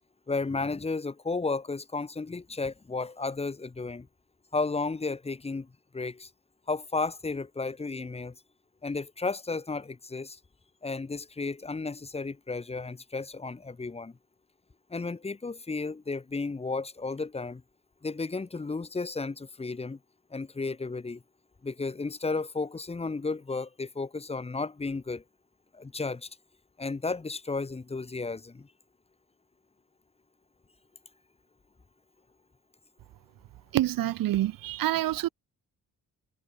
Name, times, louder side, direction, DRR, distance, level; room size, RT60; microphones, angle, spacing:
voice 1, 0.3-4.1 4.5-5.7 5.9-6.3 6.7-8.3 8.8-10.4 10.8-14.1 14.9-17.6 18.0-20.0 20.3-21.2 21.6-25.2 25.7-26.3 26.8-28.7, left 3 dB, 20° left, 6.4 m, -33 dB
voice 2, 33.7-35.3, right 14 dB, 80° right, 1.3 m, -27 dB
cardioid pair, 180°, 33 cm